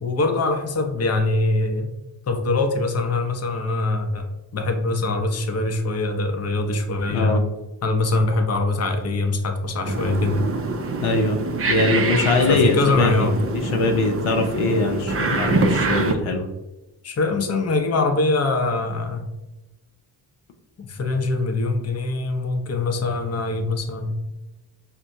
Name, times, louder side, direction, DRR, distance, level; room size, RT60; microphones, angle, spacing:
voice 1, 0.0-1.9 2.3-4.3 4.5-7.4 7.8-10.4 12.5-13.4 17.0-19.3 20.8-24.1, left 2 dB, 30° left, 4 dB, 0.7 m, -23 dB
voice 2, 7.1-7.4 11.0-11.4 11.7-13.3 13.5-16.5, left 3 dB, 75° left, 3 dB, 0.6 m, -21 dB
sound 1, 9.8-16.1, right 3 dB, 30° right, 0.5 m, -25 dB
4.4 x 2.2 x 2.6 m, 1.0 s
supercardioid pair, 40°, 50 cm